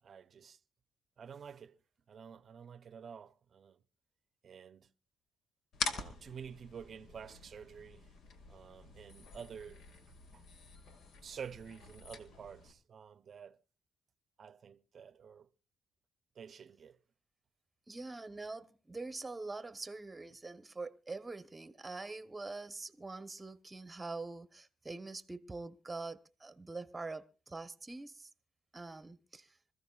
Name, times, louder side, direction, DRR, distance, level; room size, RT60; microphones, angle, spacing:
voice 1, 0.0-0.6 1.2-1.8 2.1-3.8 4.4-4.9 5.8-8.1 8.5-10.4 11.2-13.6 14.4-15.5 16.3-17.0, right 7 dB, 50° right, 0.7 m, -50 dB
sound 1, 5.7-12.7, left 4 dB, 75° left, 1.8 m, -45 dB
voice 2, 17.9-28.3 28.7-29.5, right 3 dB, 20° right, 0.9 m, -44 dB
26.0 x 14.5 x 2.3 m
cardioid pair, 90°, 0 cm